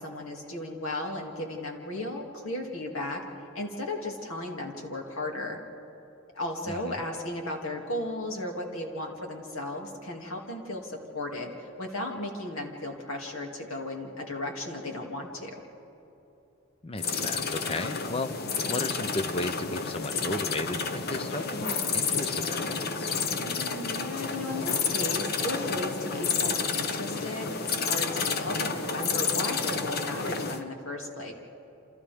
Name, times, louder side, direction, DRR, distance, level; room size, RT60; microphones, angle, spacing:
voice 1, 0.0-5.6 6.3-15.6 23.4-31.3, left 1 dB, 75° left, 1 dB, 2.5 m, -35 dB
voice 2, 6.6-7.0 16.8-18.3 18.7-23.1, left 2 dB, 25° left, 11 dB, 0.6 m, -35 dB
sound 1, 17.0-30.6, left 5 dB, 50° left, 0.9 m, -30 dB
29.0 x 27.5 x 3.6 m, 3.0 s
head